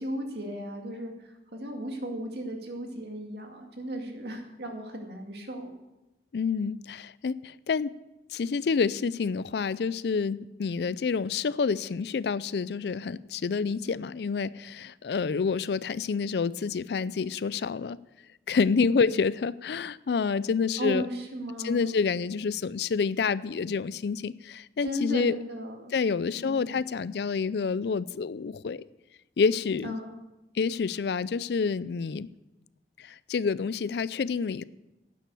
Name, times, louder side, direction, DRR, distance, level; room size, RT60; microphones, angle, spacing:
voice 1, 0.0-5.7 18.8-19.1 20.8-21.9 24.8-25.9 26.3-26.7 29.8-30.2, right 1 dB, 65° right, 3 dB, 2.1 m, -36 dB
voice 2, 6.3-7.9 8.3-18.0 18.5-21.1 21.4-25.4 25.9-28.8 29.4-30.0 30.6-32.3 33.0-34.6, left 5 dB, 65° left, 18 dB, 0.4 m, -28 dB
11.5 x 9.2 x 7.0 m, 0.99 s
head